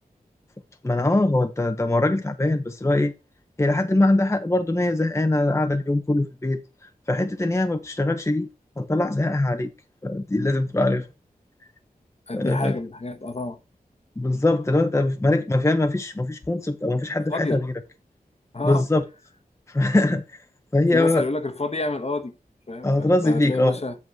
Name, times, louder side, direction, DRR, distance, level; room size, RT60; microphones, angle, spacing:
voice 1, 0.8-3.1 3.6-8.5 8.8-9.7 10.0-11.1 12.3-12.8 14.2-17.7 18.6-19.0 19.7-20.4 20.7-21.3 22.8-23.8, left 2 dB, 20° left, 0.7 m, -22 dB
voice 2, 12.3-13.6 17.3-17.6 18.5-18.8 20.9-22.4 22.7-24.0, left 2 dB, 40° left, 1.0 m, -29 dB
8.1 x 4.7 x 4.5 m
wide cardioid pair, 65°, 16 cm